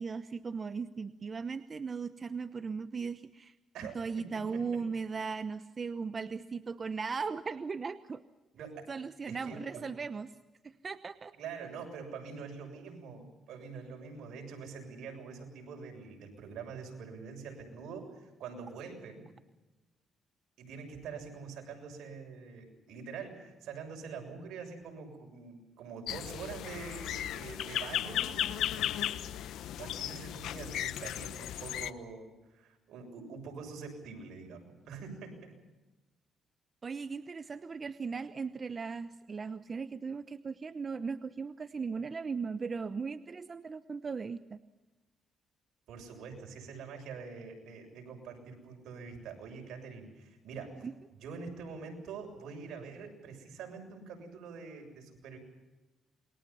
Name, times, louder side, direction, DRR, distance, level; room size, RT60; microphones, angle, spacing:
voice 1, 0.0-3.5 3.9-8.2 8.9-10.3 10.6-11.3 36.8-44.6 50.8-50.9, right 5 dB, 35° right, 11 dB, 0.9 m, -38 dB
voice 2, 3.7-4.6 8.5-8.9 9.3-10.0 11.4-19.3 20.6-28.7 29.6-35.5 45.9-50.9 51.2-55.4, right 5 dB, 80° right, 3 dB, 7.0 m, -45 dB
sound 1, 26.1-31.9, left 11 dB, 85° left, 1.0 m, -35 dB
28.0 x 22.5 x 5.6 m, 1.1 s
cardioid pair, 90°, 0 cm